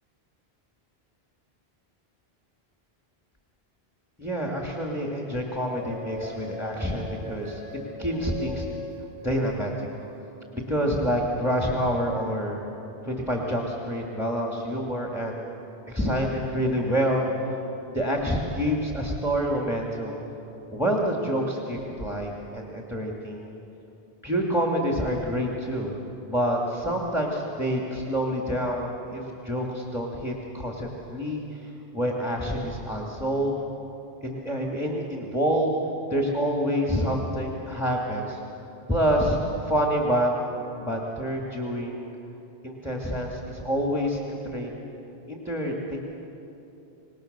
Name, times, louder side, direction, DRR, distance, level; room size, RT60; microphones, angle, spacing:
voice 1, 4.2-7.6 8.0-8.7 9.2-9.9 10.5-12.6 13.0-15.5 15.9-17.3 17.9-20.2 20.7-23.5 24.2-25.9 26.3-33.6 34.2-35.7 36.1-38.4 38.9-42.1 42.6-44.7 45.3-46.0, equal, ahead, -1 dB, 1.9 m, -27 dB
sound 1, 5.6-10.1, left 2 dB, 40° right, 7.0 m, -40 dB
26.0 x 19.5 x 6.6 m, 3.0 s
omnidirectional pair, 1.1 m